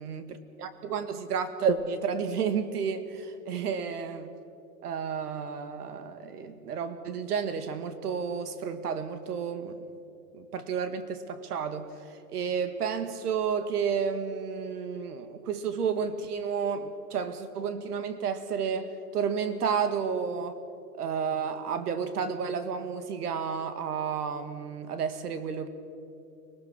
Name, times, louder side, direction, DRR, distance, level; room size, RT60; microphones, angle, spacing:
voice 1, 0.0-4.3 4.8-9.8 10.3-11.9 12.3-20.6 21.0-25.7, right 6 dB, 70° right, 10 dB, 2.0 m, -31 dB
24.5 x 19.0 x 6.2 m, 2.6 s
hypercardioid pair, 155°, 48 cm